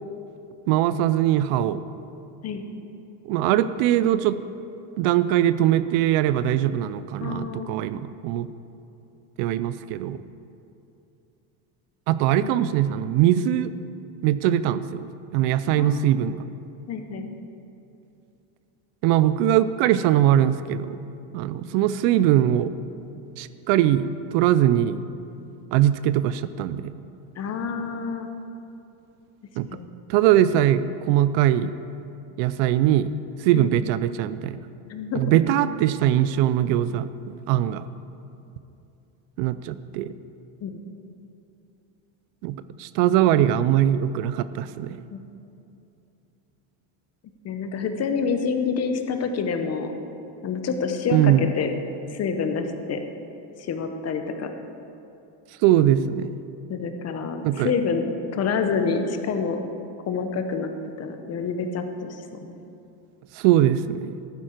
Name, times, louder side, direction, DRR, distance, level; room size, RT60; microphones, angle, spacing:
voice 1, 0.7-1.8 3.2-4.4 5.0-8.5 9.4-10.2 12.1-13.7 14.2-16.4 19.0-21.0 21.3-22.7 23.4-24.1 24.3-25.0 25.7-26.9 29.6-29.7 30.1-31.7 32.4-33.1 33.4-34.6 35.1-37.8 39.4-40.1 42.4-45.0 51.1-51.5 55.6-56.3 57.4-57.7 63.4-64.1, right 12 dB, 70° right, 14 dB, 0.5 m, -21 dB
voice 2, 7.2-7.9 12.4-12.6 15.8-16.2 16.9-17.4 27.4-28.3 29.7-29.9 33.5-33.7 34.9-35.4 37.5-37.7 40.6-40.8 45.1-45.2 47.4-49.9 50.4-51.7 52.1-53.0 53.6-54.5 56.7-58.1 58.3-59.6 60.1-62.5, left 5 dB, 30° left, 7 dB, 0.8 m, -28 dB
12.0 x 9.6 x 4.4 m, 2.7 s
cardioid pair, 145°, 48 cm